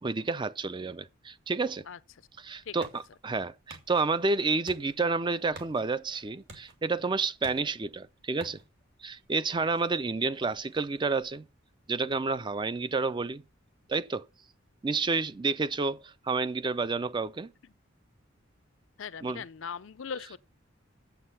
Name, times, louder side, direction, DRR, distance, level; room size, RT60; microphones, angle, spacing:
voice 1, 0.0-1.8 2.4-8.6 9.0-11.5 11.9-13.4 13.9-14.3 14.8-17.5 19.2-19.4, right 4 dB, 25° right, 0.4 m, -30 dB
sound 1, 2.1-13.5, right 2 dB, 55° right, 2.2 m, -55 dB
voice 2, 19.0-20.4, left 6 dB, 70° left, 0.5 m, -39 dB
8.1 x 7.4 x 5.6 m
head